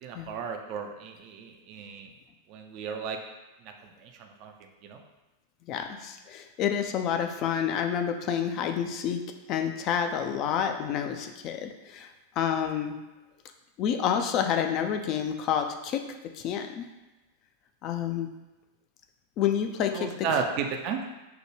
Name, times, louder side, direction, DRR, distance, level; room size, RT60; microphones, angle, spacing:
voice 1, 0.0-2.1 2.5-3.2 3.6-4.5 4.8-5.0 19.9-21.0, right 6 dB, 40° right, 3 dB, 0.4 m, -34 dB
voice 2, 5.7-9.2 9.5-12.1 12.4-13.0 13.8-16.0 16.4-16.9 17.8-18.3 19.4-20.3, left 8 dB, 40° left, 6 dB, 0.3 m, -29 dB
4.8 x 2.1 x 3.1 m, 1.1 s
figure-of-eight pair, 90°, 0 cm